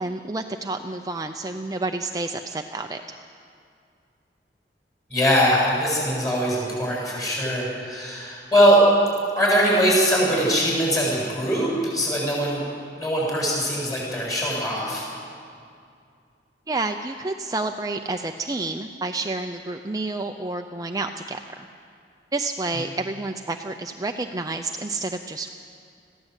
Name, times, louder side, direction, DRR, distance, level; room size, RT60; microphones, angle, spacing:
voice 1, 0.0-3.2 16.7-21.7 22.3-25.5, right 2 dB, 20° right, 5 dB, 0.6 m, -29 dB
voice 2, 5.1-8.8 9.4-12.6 13.0-15.0, equal, 20° left, -3 dB, 7.7 m, -21 dB
21.5 x 15.5 x 8.2 m, 2.3 s
head